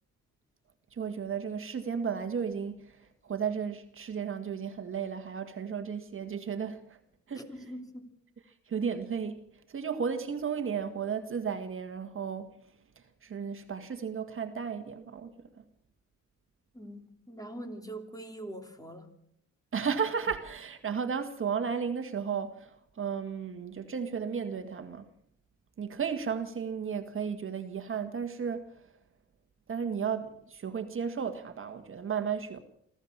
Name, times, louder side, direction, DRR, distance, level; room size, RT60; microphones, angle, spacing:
voice 1, 1.0-3.0 3.2-6.8 7.3-7.5 8.7-9.4 9.7-12.5 13.2-15.3 19.7-25.1 25.8-28.7 29.7-32.6, right 6 dB, 45° right, 1.8 m, -34 dB
voice 2, 7.4-8.1 16.7-19.1, right 1 dB, 10° left, 3.0 m, -43 dB
24.5 x 14.5 x 7.4 m
cardioid pair, 90°, 30 cm